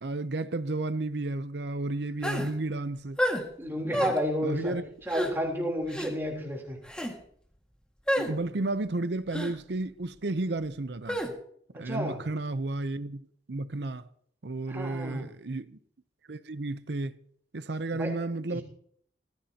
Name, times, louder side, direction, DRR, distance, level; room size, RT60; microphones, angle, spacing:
voice 1, 0.0-3.2 3.8-4.1 4.4-4.8 8.2-11.2 11.8-14.0 14.4-15.8 16.3-17.2 17.5-18.6, right 2 dB, 65° right, 0.7 m, -32 dB
sound 1, 2.2-2.5 3.2-3.4 3.9-4.2 5.1-5.3 5.9-6.1 6.8-7.1 8.1-8.3 9.3-9.5 11.1-11.3, equal, 5° left, 1.9 m, -29 dB
voice 2, 3.6-4.7 5.0-6.8 11.7-12.2 14.7-15.3 18.0-18.1 18.5-18.6, equal, 15° right, 3.4 m, -31 dB
18.5 x 14.5 x 2.9 m
head